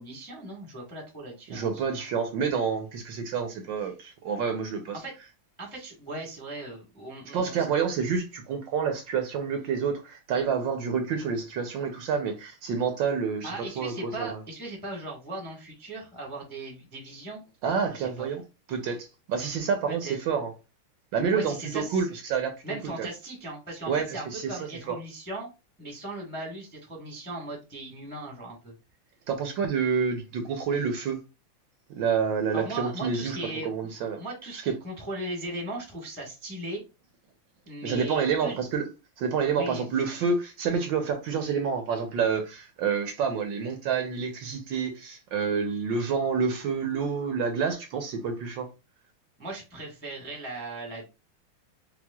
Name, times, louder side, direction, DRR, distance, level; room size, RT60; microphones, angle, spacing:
voice 1, 0.0-1.8 4.9-5.1 5.6-7.6 13.4-17.4 17.9-18.3 20.0-20.2 21.3-22.1 22.6-25.5 25.8-28.7 32.5-33.7 34.2-36.8 37.7-38.6 39.5-39.8 49.4-51.1, right 2 dB, 10° left, 0.6 m, -38 dB
voice 2, 1.5-5.0 7.3-14.4 17.6-18.4 18.7-20.5 21.1-22.5 23.0-23.1 23.9-24.6 24.9-25.0 29.3-31.2 32.0-33.4 33.6-34.2 34.6-34.7 37.8-38.8 39.2-48.7, right 6 dB, 70° right, 1.2 m, -28 dB
5.8 x 2.1 x 2.2 m
omnidirectional pair, 2.3 m